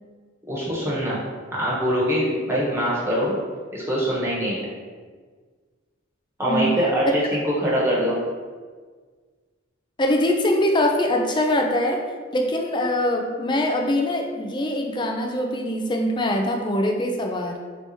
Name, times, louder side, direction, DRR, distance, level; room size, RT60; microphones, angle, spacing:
voice 1, 0.5-1.2 1.5-3.3 3.7-4.7 6.4-8.2, equal, 10° right, -7 dB, 1.1 m, -23 dB
voice 2, 10.0-12.0 12.3-17.6, left 1 dB, 25° left, 2 dB, 0.4 m, -23 dB
3.3 x 3.0 x 4.2 m, 1.5 s
head